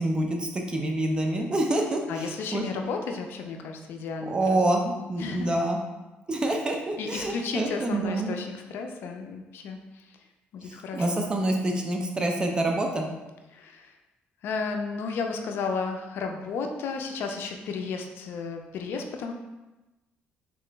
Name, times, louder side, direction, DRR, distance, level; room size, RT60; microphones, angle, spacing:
voice 1, 0.0-2.6 4.3-5.8 6.3-8.4 10.6-13.1, right 1 dB, 20° right, 2 dB, 0.5 m, -27 dB
voice 2, 2.1-4.6 5.2-5.5 7.0-10.1 10.5-11.2 13.5-13.9 14.4-19.3, left 4 dB, 70° left, 4 dB, 0.4 m, -33 dB
3.7 x 2.9 x 3.3 m, 1.1 s
cardioid pair, 120°, 4 cm